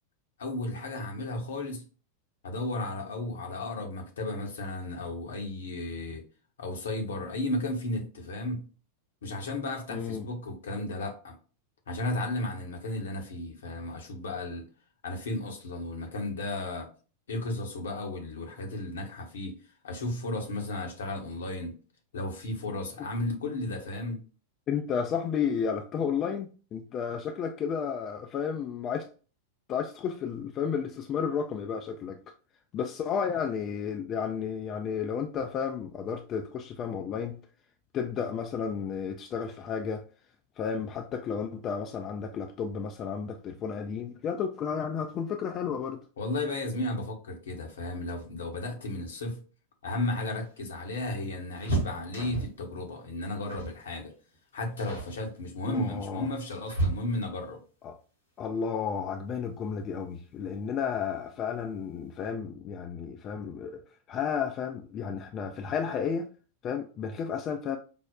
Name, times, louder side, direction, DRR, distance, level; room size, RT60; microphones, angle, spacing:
voice 1, 0.4-1.9 2.4-6.2 6.6-8.7 9.2-11.3 11.9-14.7 15.0-16.9 17.3-19.5 19.8-21.7 22.1-24.2 46.2-49.4 49.8-54.1 54.5-57.6, left 2 dB, 65° left, 0.8 m, -34 dB
voice 2, 9.9-10.3 24.7-29.1 29.7-32.2 32.7-37.4 37.9-40.1 40.6-46.0 55.6-56.3 57.8-58.0 58.4-63.8 64.1-66.3 66.6-67.8, left 7 dB, 30° left, 0.3 m, -32 dB
sound 1, 50.0-52.7 53.5-53.8 54.1-54.4 54.8-55.2 56.0-57.5 59.2-59.3 59.7-59.8 60.9-61.4 61.7-61.8 62.1-62.3, right 2 dB, 85° left, 1.3 m, -34 dB
5.1 x 2.0 x 2.2 m
figure-of-eight pair, 90°, 0 cm